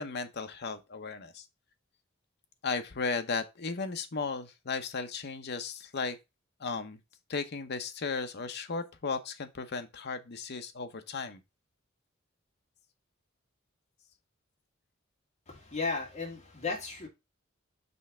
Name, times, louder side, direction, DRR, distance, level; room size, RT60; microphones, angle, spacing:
voice 1, 0.0-1.5 2.6-6.2 6.6-7.0 7.3-11.4, left 4 dB, 55° left, 0.8 m, -35 dB
voice 2, 15.5-17.1, left 4 dB, 35° left, 2.2 m, -35 dB
5.5 x 3.4 x 5.4 m
head